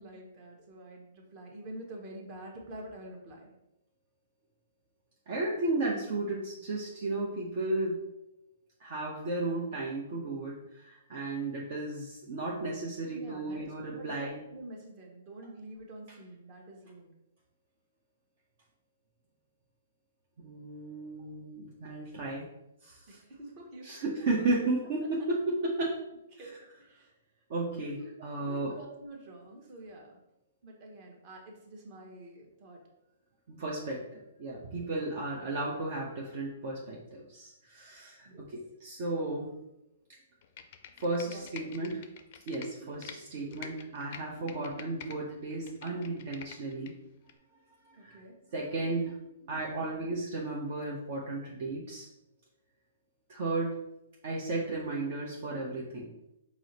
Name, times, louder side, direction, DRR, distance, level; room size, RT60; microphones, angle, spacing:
voice 1, 0.0-3.5 13.1-17.1 23.1-24.0 26.3-27.1 27.9-30.2 30.6-32.8 34.7-34.9 35.4-35.5 38.2-38.5 41.2-41.7 43.1-43.6 47.9-48.4, right 1 dB, 40° right, 0 dB, 1.1 m, -47 dB
voice 2, 5.3-8.0 8.8-14.4 20.4-22.4 22.8-23.2 23.8-26.0 26.4-26.5 27.5-28.7 33.5-39.5 41.0-42.0 42.5-47.0 47.8-48.2 48.5-49.2 49.5-52.1 53.3-53.8 54.2-56.1, right 2 dB, 55° right, -3 dB, 0.7 m, -34 dB
Computer keyboard, 40.4-43.2 43.5-45.2 45.5-46.9 47.3-47.4, left 8 dB, 50° left, 0.4 m, -47 dB
4.7 x 2.0 x 4.1 m, 0.87 s
hypercardioid pair, 135°, 0 cm